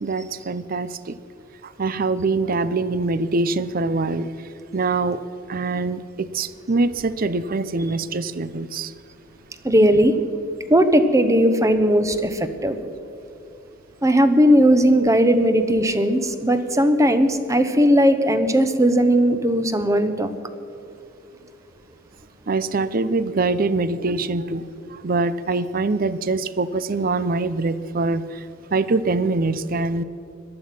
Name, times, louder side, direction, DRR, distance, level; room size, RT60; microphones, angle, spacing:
voice 1, 0.0-1.2 1.6-4.3 4.7-5.2 5.5-8.9 22.5-28.4 28.7-30.0, right 3 dB, 45° right, 15 dB, 0.5 m, -24 dB
voice 2, 9.6-10.1 10.7-12.8 14.0-20.3, equal, 15° right, 10 dB, 0.9 m, -17 dB
18.5 x 12.5 x 5.9 m, 2.8 s
head